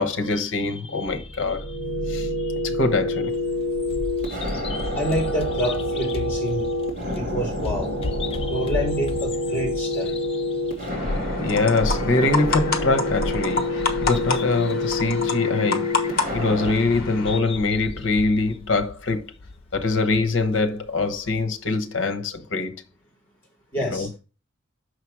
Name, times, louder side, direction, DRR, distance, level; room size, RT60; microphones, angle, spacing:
voice 1, 0.0-1.8 2.1-3.4 11.4-19.3 19.7-22.8 23.8-24.1, left 3 dB, 70° left, 1.0 m, -24 dB
sound 1, 1.1-16.7, left 1 dB, 45° right, 2.0 m, -27 dB
Bird vocalization bird call bird song, 3.3-21.4, left 2 dB, 30° left, 0.4 m, -35 dB
voice 2, 5.0-6.7 7.1-7.9 8.5-10.1 23.7-24.1, equal, 10° left, 3.6 m, -27 dB
sound 2, 10.9-17.4, left 3 dB, 45° left, 1.2 m, -29 dB
6.5 x 4.9 x 4.7 m
head